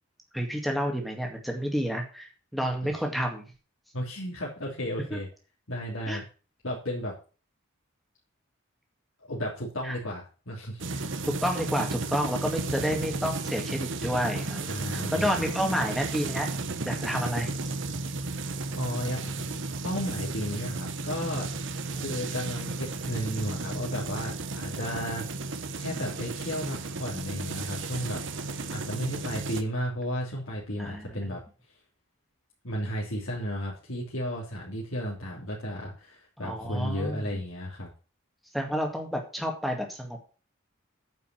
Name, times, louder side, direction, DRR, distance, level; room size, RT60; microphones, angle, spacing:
voice 1, 0.3-3.4 5.1-5.2 6.1-6.2 9.8-10.0 11.4-16.5 16.8-17.5 21.9-22.1 30.8-31.2 36.4-37.3 38.5-40.2, equal, ahead, 2 dB, 2.1 m, -30 dB
voice 2, 3.9-5.3 5.7-6.2 6.6-7.1 9.3-11.0 14.7-15.3 18.7-19.4 19.8-21.7 22.0-25.2 25.8-31.4 32.6-37.9, equal, 75° left, -4 dB, 3.1 m, -34 dB
sound 1, 10.8-29.6, right 3 dB, 60° right, 1.0 m, -34 dB
9.3 x 5.7 x 7.5 m, 0.36 s
head